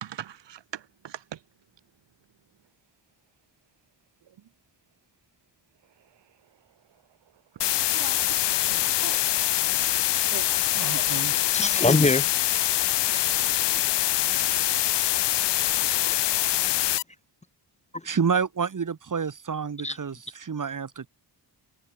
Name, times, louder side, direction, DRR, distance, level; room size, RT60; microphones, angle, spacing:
voice 1, 0.0-1.4 7.9-9.5 10.3-11.1, right 10 dB, 75° right, 1.6 m, -41 dB
sound 1, 7.6-17.0, left 14 dB, 70° left, 0.6 m, -24 dB
voice 2, 10.7-11.4 18.0-21.1, right 6 dB, 45° right, 3.5 m, -29 dB
voice 3, 11.5-12.3 12.9-13.0 13.4-13.9 16.1-16.2 16.4-16.5 17.9-18.0 19.8-20.0, left 2 dB, 15° left, 1.1 m, -25 dB
wide cardioid pair, 120°, 43 cm